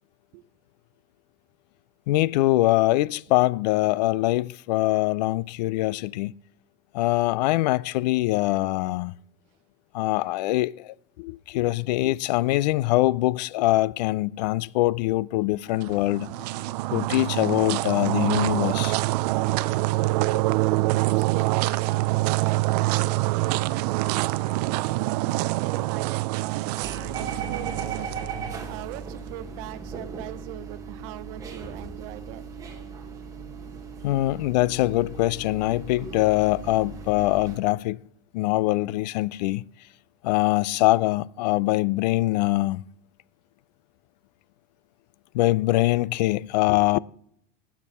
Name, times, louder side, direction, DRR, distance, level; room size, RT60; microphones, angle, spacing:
voice 1, 2.1-6.3 6.9-9.2 9.9-16.3 16.9-19.0 34.0-38.0 38.3-39.7 40.2-42.8 45.3-47.0, left 18 dB, 80° left, 0.4 m, -23 dB
sound 1, 15.7-29.0, right 19 dB, 75° right, 0.5 m, -26 dB
voice 2, 20.9-24.4 25.0-32.7, right 14 dB, 55° right, 0.8 m, -40 dB
sound 2, 26.8-37.6, right 5 dB, 15° right, 1.4 m, -38 dB
19.5 x 7.4 x 4.2 m
supercardioid pair, 165°, 21 cm